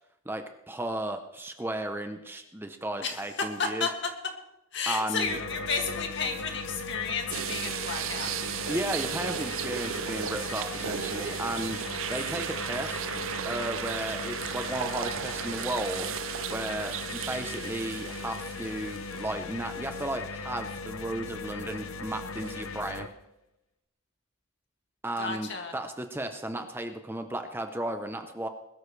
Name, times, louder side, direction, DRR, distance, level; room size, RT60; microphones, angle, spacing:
voice 1, 0.2-3.9 4.9-5.4 8.7-13.1 13.4-16.1 16.5-23.1 25.0-28.5, right 1 dB, 10° right, 6 dB, 0.7 m, -34 dB
voice 2, 3.6-3.9 4.7-8.3 25.2-25.7, left 5 dB, 55° left, 3 dB, 2.3 m, -32 dB
sound 1, 5.2-23.1, left 4 dB, 85° left, 0.9 m, -38 dB
sound 2, 7.3-19.5 20.0-20.1 22.4-22.5, right 9 dB, 70° right, 0.5 m, -35 dB
21.0 x 13.5 x 3.3 m, 0.89 s
head